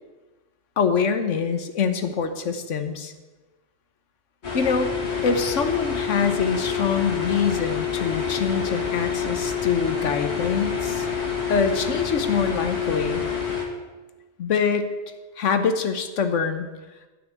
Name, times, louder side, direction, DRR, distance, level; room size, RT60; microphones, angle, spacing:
voice 1, 0.8-3.1 4.5-4.9 5.2-11.1 11.5-13.3 14.4-14.9 15.4-16.7, left 6 dB, 80° left, 8 dB, 1.3 m, -24 dB
sound 1, 4.4-13.6, left 7 dB, 65° left, 1.9 m, -27 dB
10.5 x 5.8 x 8.2 m, 1.2 s
omnidirectional pair, 1.2 m